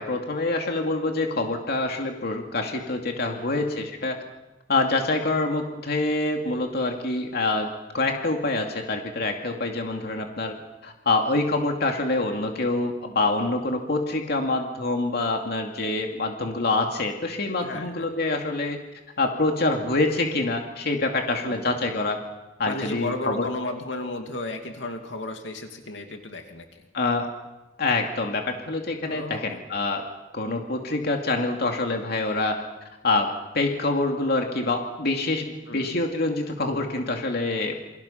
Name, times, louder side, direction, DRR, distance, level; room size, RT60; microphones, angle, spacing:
voice 1, 0.0-4.2 4.7-7.7 7.9-10.5 10.8-18.8 19.2-22.2 22.6-23.5 26.9-27.3 27.8-30.0 30.3-32.6 33.0-33.3 33.5-37.8, left 2 dB, 60° left, 3 dB, 2.5 m, -26 dB
voice 2, 3.3-3.7 17.6-18.0 21.4-21.9 22.7-26.7 29.1-29.6 35.7-36.0, left 2 dB, 80° left, 4 dB, 2.6 m, -34 dB
28.5 x 24.0 x 5.8 m, 1.0 s
head